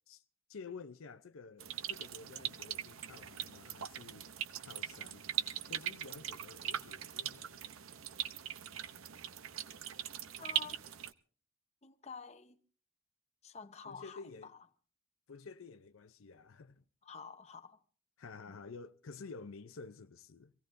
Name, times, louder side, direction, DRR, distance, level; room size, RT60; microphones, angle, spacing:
voice 1, 0.5-4.3 4.6-5.2 5.7-7.8 8.6-8.8 13.9-14.5 15.3-16.8 18.2-20.5, left 4 dB, 75° left, 0.6 m, -51 dB
sound 1, 1.6-11.1, right 11 dB, 75° right, 0.7 m, -41 dB
voice 2, 10.4-10.8 11.8-12.6 13.4-14.2 17.0-17.8 18.5-18.6, left 5 dB, 30° left, 0.8 m, -49 dB
25.0 x 17.0 x 2.6 m
head